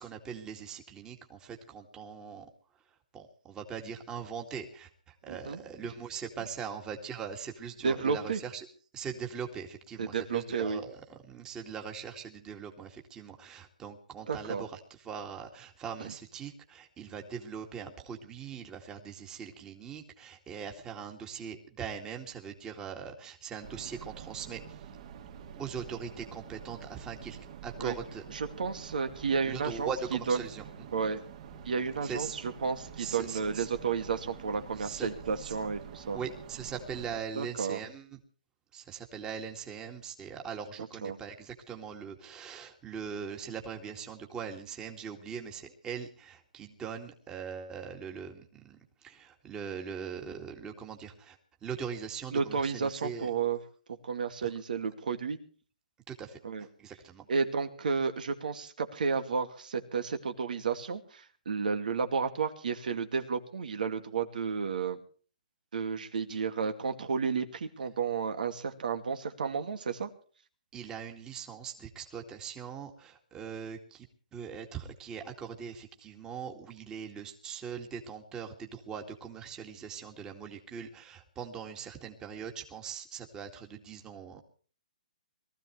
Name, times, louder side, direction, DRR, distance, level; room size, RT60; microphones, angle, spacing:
voice 1, 0.0-2.5 3.1-8.7 8.9-11.0 11.2-24.9 25.5-28.2 29.4-30.6 32.0-32.4 33.0-33.7 34.8-35.6 36.1-38.2 38.7-51.4 51.6-53.3 56.1-57.3 70.7-74.1 74.3-84.4, right 7 dB, 15° right, 3 dB, 2.2 m, -41 dB
voice 2, 5.3-5.6 7.8-8.4 10.0-10.8 14.3-14.6 27.8-28.0 28.3-29.9 30.3-30.4 30.9-31.2 31.7-36.2 37.4-37.8 41.0-41.2 52.3-53.6 54.0-55.4 56.4-56.7 57.3-65.0 65.7-70.1, right 5 dB, 70° right, 7 dB, 2.4 m, -32 dB
sound 1, 23.6-37.2, right 7 dB, 45° right, 2.9 m, -47 dB
23.0 x 15.0 x 3.3 m, 0.41 s
hypercardioid pair, 150°, 5 cm